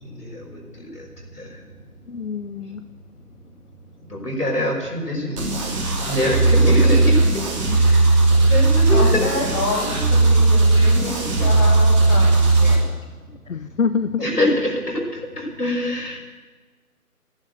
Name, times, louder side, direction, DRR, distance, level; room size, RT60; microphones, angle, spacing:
voice 1, 0.0-1.1 1.4-1.5 4.1-5.4 6.1-7.1 7.8-8.1 8.5-9.3 14.2-15.0 15.4-16.2, left 1 dB, 85° left, 0 dB, 5.7 m, -24 dB
voice 2, 2.1-2.8 7.7-7.8 10.7-10.9 12.6-12.8 13.5-14.3, left 5 dB, 60° left, 11 dB, 0.8 m, -26 dB
sound 1, 5.4-12.7, right 2 dB, 20° right, 2.8 m, -17 dB
voice 3, 8.9-12.9, left 2 dB, 5° left, -2 dB, 1.3 m, -28 dB
13.0 x 11.5 x 9.4 m, 1.3 s
figure-of-eight pair, 150°, 46 cm